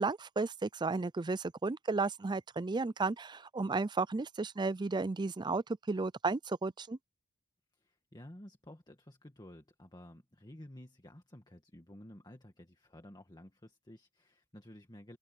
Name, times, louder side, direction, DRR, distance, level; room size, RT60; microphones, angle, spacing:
voice 1, 0.0-7.0, right 3 dB, 20° right, 0.4 m, -33 dB
voice 2, 7.7-15.2, left 1 dB, 20° left, 1.9 m, -53 dB
open air
head